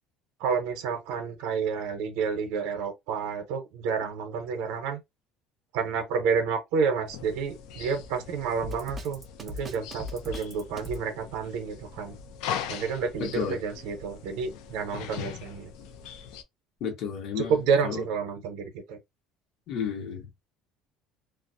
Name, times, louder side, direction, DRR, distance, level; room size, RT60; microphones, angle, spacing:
voice 1, 0.4-5.0 5.7-12.2 12.7-15.7 17.4-19.0, right 6 dB, 80° right, 0.6 m, -30 dB
sound 1, 7.1-16.4, left 8 dB, 70° left, 0.4 m, -41 dB
Drum kit, 8.6-11.0, left 1 dB, 15° right, 0.5 m, -38 dB
voice 2, 13.2-13.6 16.8-17.6 17.8-18.0 19.7-20.3, left 6 dB, 50° left, 0.9 m, -32 dB
2.3 x 2.1 x 2.5 m
cardioid pair, 160°, 0 cm